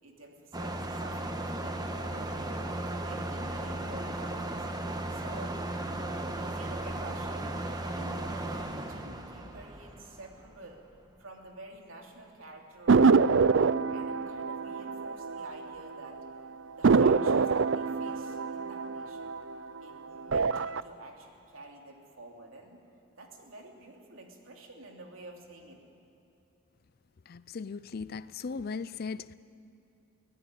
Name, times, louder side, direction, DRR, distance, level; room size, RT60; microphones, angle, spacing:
voice 1, 0.0-4.6 5.1-5.6 6.4-7.5 7.8-10.8 11.2-13.6 13.9-16.2 16.7-19.4 19.8-22.8 23.2-25.8, right 2 dB, 90° right, 3.1 m, -49 dB
sound 1, 0.5-10.7, right 1 dB, 20° right, 1.4 m, -36 dB
sound 2, 12.9-15.9 16.2-16.3 16.8-19.8 20.2-20.8, right 4 dB, 65° right, 0.5 m, -25 dB
voice 2, 27.3-29.3, left 5 dB, 50° left, 0.4 m, -38 dB
23.5 x 17.0 x 9.2 m
head